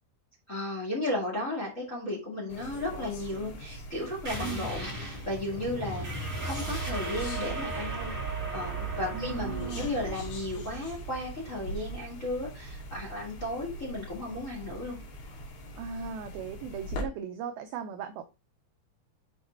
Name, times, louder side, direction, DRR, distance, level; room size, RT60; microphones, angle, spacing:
voice 1, 0.5-8.1 8.5-15.0, left 1 dB, 35° left, 1.3 m, -34 dB
sound 1, 2.5-17.1, equal, 65° left, 3.7 m, -43 dB
sound 2, 4.2-13.5, right 3 dB, 20° right, 3.6 m, -37 dB
voice 2, 9.1-9.9 15.8-18.2, right 6 dB, 90° right, 2.1 m, -38 dB
7.9 x 4.8 x 4.4 m
omnidirectional pair, 5.1 m